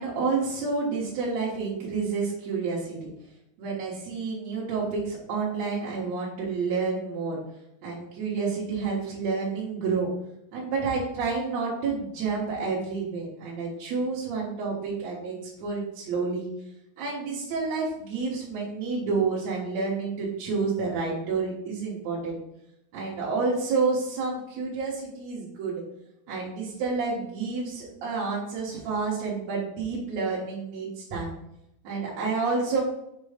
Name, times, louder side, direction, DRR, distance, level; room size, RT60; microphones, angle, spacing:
voice 1, 0.0-3.1 3.6-7.4 7.8-10.1 10.5-16.5 17.0-22.3 22.9-25.8 26.3-31.3 31.8-32.8, right 4 dB, 60° right, -6 dB, 2.0 m, -29 dB
7.4 x 3.0 x 4.9 m, 0.79 s
omnidirectional pair, 4.4 m